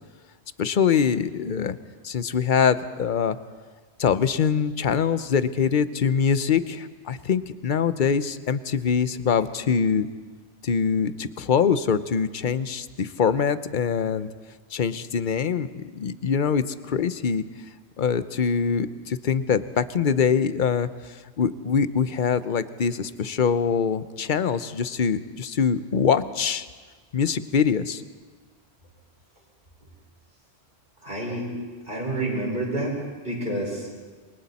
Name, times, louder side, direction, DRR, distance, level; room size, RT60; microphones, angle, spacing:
voice 1, 0.6-1.8 2.0-3.4 4.0-10.1 10.6-14.3 14.7-17.4 18.0-20.9 21.4-26.7 27.1-28.0, left 6 dB, 50° left, 13 dB, 0.8 m, -23 dB
voice 2, 31.0-31.5 31.9-33.0 33.2-33.9, right 1 dB, 55° right, -2 dB, 5.8 m, -28 dB
28.0 x 23.0 x 4.2 m, 1.4 s
omnidirectional pair, 1.1 m